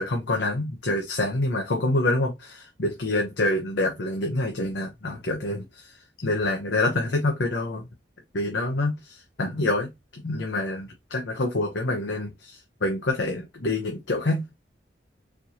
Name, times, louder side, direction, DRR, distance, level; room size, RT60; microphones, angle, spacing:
voice 1, 0.0-5.9 6.2-7.8 8.3-14.5, left 2 dB, 80° left, 0.8 m, -27 dB
4.4 x 2.9 x 2.6 m
head